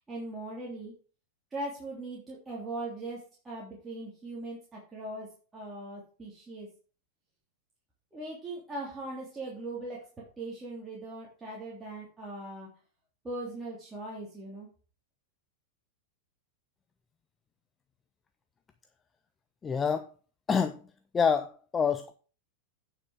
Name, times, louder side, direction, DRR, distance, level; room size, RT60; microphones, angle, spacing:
voice 1, 0.1-0.9 1.5-6.7 8.1-12.7 13.2-14.7, right 2 dB, 15° right, -5 dB, 3.0 m, -40 dB
voice 2, 19.6-20.1 20.5-20.8 21.1-22.1, left 6 dB, 20° left, 9 dB, 0.6 m, -27 dB
9.3 x 6.0 x 4.7 m, 0.38 s
figure-of-eight pair, 90°, 0 cm